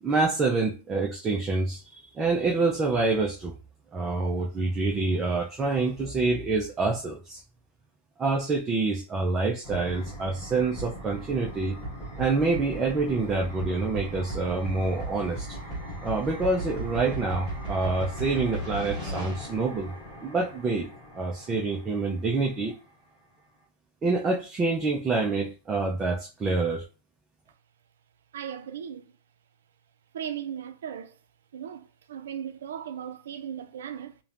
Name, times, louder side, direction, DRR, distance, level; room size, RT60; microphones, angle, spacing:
voice 1, 0.0-3.5 3.9-7.4 8.2-11.8 12.2-15.6 16.0-19.9 20.2-20.9 21.1-22.7 24.0-26.9, right 3 dB, 15° right, 0.3 m, -27 dB
sound 1, 9.6-22.4, right 1 dB, 5° left, 1.4 m, -37 dB
voice 2, 28.3-29.1 30.1-31.2 31.5-34.2, right 9 dB, 90° right, 0.4 m, -37 dB
3.1 x 2.1 x 2.4 m
supercardioid pair, 160°, 0 cm